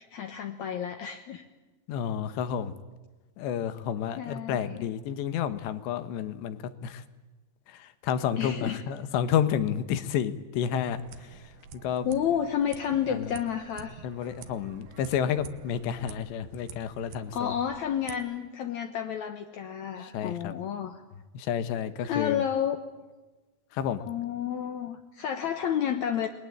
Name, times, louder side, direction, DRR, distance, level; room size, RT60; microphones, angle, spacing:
voice 1, 0.0-1.5 4.2-4.8 8.4-8.8 12.1-14.0 17.3-21.0 22.0-22.8 24.0-26.3, left 9 dB, 70° left, 5 dB, 1.8 m, -30 dB
voice 2, 1.9-2.7 3.4-7.0 7.7-12.1 13.1-13.4 14.0-17.6 20.0-20.5 21.4-22.4 23.7-24.0, left 9 dB, 85° left, 12 dB, 3.5 m, -30 dB
sound 1, 10.7-18.2, right 8 dB, 75° right, 3.2 m, -48 dB
29.0 x 21.5 x 8.6 m, 1.2 s
omnidirectional pair, 5.0 m